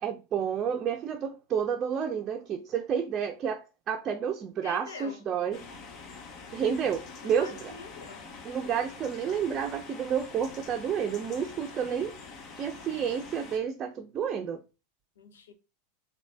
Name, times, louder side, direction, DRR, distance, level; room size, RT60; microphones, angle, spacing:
voice 1, 0.0-5.6 6.5-7.7 8.4-12.2 12.5-14.6, right 7 dB, 35° right, 0.5 m, -30 dB
voice 2, 4.6-5.3 7.2-8.3 15.2-15.5, left 5 dB, 85° left, 0.7 m, -45 dB
sound 1, 5.5-13.6, left 4 dB, 45° left, 0.9 m, -45 dB
3.9 x 3.0 x 3.3 m
hypercardioid pair, 95°, 0 cm